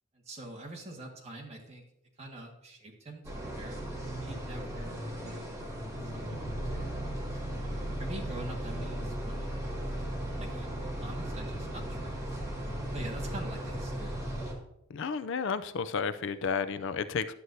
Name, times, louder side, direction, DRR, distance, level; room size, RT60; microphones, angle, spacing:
voice 1, 0.1-1.8 2.2-3.8 4.2-6.4 7.3-7.6 8.0-10.7 11.0-12.5 12.9-14.2, right 1 dB, 30° right, -1 dB, 1.7 m, -45 dB
sound 1, 3.2-14.5, right 1 dB, 15° right, 1.9 m, -36 dB
voice 2, 14.9-17.3, left 6 dB, 65° left, 13 dB, 0.4 m, -32 dB
11.0 x 7.7 x 2.7 m, 0.81 s
head